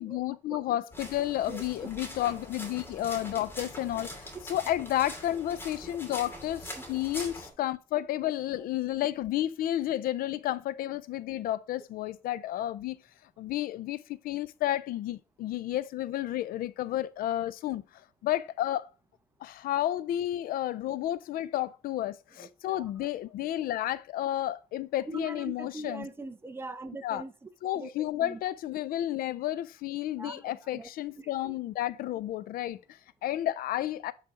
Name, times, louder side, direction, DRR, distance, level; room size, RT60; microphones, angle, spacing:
voice 1, 0.0-13.0 13.4-18.9 19.4-26.1 27.0-27.2 27.6-34.1, left 13 dB, 75° left, 0.4 m, -31 dB
sound 1, 0.9-7.5, equal, 15° left, 2.6 m, -43 dB
voice 2, 22.4-23.1 25.1-28.4 30.2-30.9 31.2-31.5, right 2 dB, 15° right, 0.7 m, -42 dB
8.4 x 4.2 x 3.6 m
cardioid pair, 140°, 15 cm